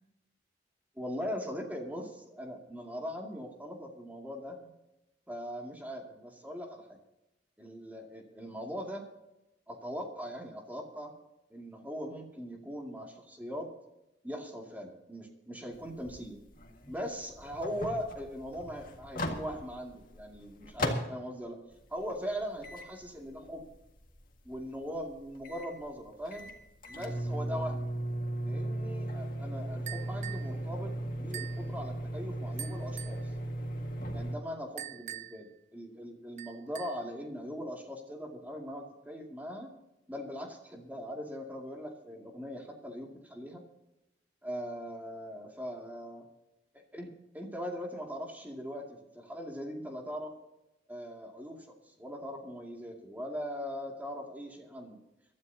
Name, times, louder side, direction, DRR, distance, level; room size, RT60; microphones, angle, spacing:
voice 1, 1.0-4.7 5.3-7.0 7.6-9.1 9.7-11.1 11.5-13.7 14.2-16.4 16.9-21.6 21.9-23.7 24.4-26.5 26.9-27.9 28.4-33.3 34.1-39.7 40.1-43.6 44.4-46.2 46.9-50.4 50.9-55.0, equal, 10° right, 1 dB, 2.4 m, -40 dB
sound 1, 15.7-21.3 21.7-34.4, equal, 50° left, 1.8 m, -37 dB
sound 2, 29.9-30.5 31.3-31.7 32.6-33.2 34.8-35.5 36.4-37.1, right 12 dB, 40° right, 0.4 m, -43 dB
23.5 x 13.0 x 2.8 m, 0.93 s
head